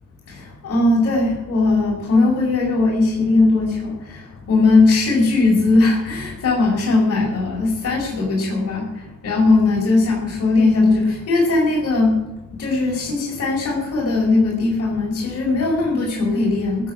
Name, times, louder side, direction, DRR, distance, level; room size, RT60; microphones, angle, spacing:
voice 1, 0.3-4.2 4.5-8.9 9.2-12.2 12.6-16.9, left 3 dB, 55° left, -3 dB, 5.3 m, -18 dB
15.5 x 7.5 x 7.7 m, 1.0 s
cardioid pair, 90°, 30 cm